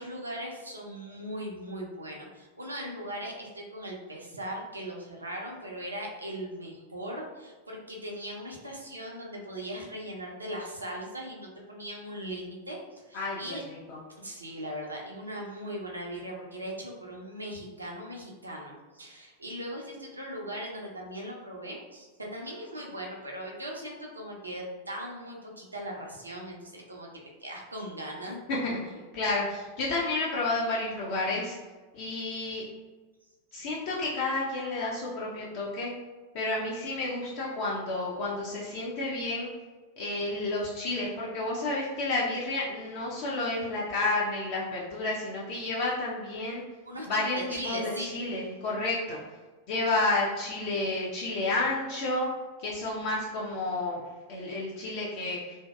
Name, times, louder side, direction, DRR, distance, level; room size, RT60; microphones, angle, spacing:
voice 1, 0.0-13.6 14.2-27.1 27.4-28.4 46.8-47.1 47.5-48.2, equal, 80° right, -1 dB, 0.4 m, -39 dB
voice 2, 13.1-14.0 28.5-31.6 31.9-32.6 33.5-35.9 36.3-39.5 40.0-46.6 47.1-49.2 49.7-52.3 52.6-54.0 54.3-55.6, left 2 dB, 45° left, -5 dB, 0.4 m, -31 dB
2.6 x 2.1 x 2.2 m, 1.3 s
figure-of-eight pair, 90°, 0 cm